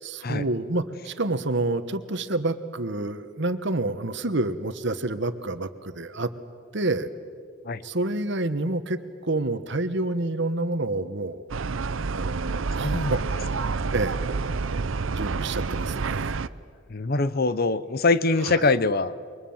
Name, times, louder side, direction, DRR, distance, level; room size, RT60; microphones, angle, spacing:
voice 1, 0.0-6.3 6.7-7.1 7.8-11.4 12.1-13.5 13.9-14.1 15.1-16.4 18.4-18.7, right 2 dB, 60° right, 11 dB, 1.3 m, -28 dB
sound 1, 11.5-16.5, right 4 dB, 80° right, 0.6 m, -28 dB
voice 2, 12.8-13.1 16.9-19.1, left 3 dB, 50° left, 15 dB, 0.9 m, -23 dB
28.0 x 23.5 x 7.3 m, 2.1 s
head